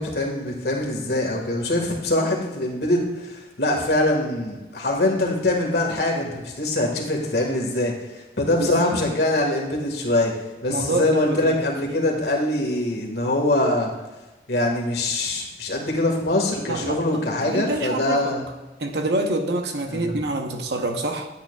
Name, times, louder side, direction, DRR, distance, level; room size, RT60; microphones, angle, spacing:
voice 1, 0.0-10.3 10.6-13.9 14.5-18.4 19.9-20.2, left 1 dB, 70° left, 1 dB, 1.7 m, -23 dB
voice 2, 8.6-9.0 10.7-11.6 16.7-17.0 17.4-18.3 18.8-21.3, right 2 dB, 75° right, 5 dB, 0.9 m, -26 dB
10.0 x 8.6 x 2.3 m, 1.1 s
head